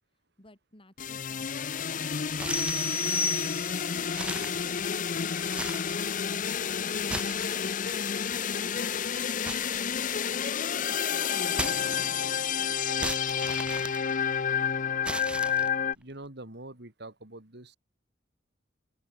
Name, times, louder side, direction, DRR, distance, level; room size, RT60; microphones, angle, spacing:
voice 1, 0.4-3.2 3.9-6.3 6.9-11.7, left 1 dB, 30° left, 5.9 m, -54 dB
sound 1, 1.0-15.9, left 7 dB, 45° left, 0.6 m, -30 dB
sound 2, 2.3-3.0 3.5-3.6 4.0-5.1 5.4-6.1 6.9-8.0 9.4-10.5 11.5-12.3 13.0-14.5 15.0-15.9, right 1 dB, 5° right, 0.7 m, -37 dB
sound 3, 2.5-4.0, left 4 dB, 10° left, 1.4 m, -31 dB
voice 2, 15.9-17.8, right 2 dB, 60° right, 3.4 m, -44 dB
open air
head